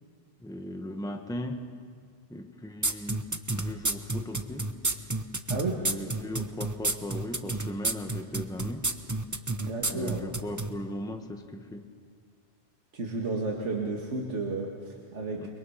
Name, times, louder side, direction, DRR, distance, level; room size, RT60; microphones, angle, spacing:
voice 1, 0.4-1.7 2.3-3.2 3.6-4.7 5.8-8.9 9.9-11.9 15.4-15.5, left 1 dB, 5° left, 5 dB, 1.2 m, -38 dB
sound 1, 2.8-10.7, right 2 dB, 15° right, 0.8 m, -29 dB
voice 2, 9.6-10.3 12.9-15.5, right 3 dB, 85° right, -1 dB, 2.2 m, -32 dB
29.5 x 22.5 x 5.7 m, 2.1 s
omnidirectional pair, 1.2 m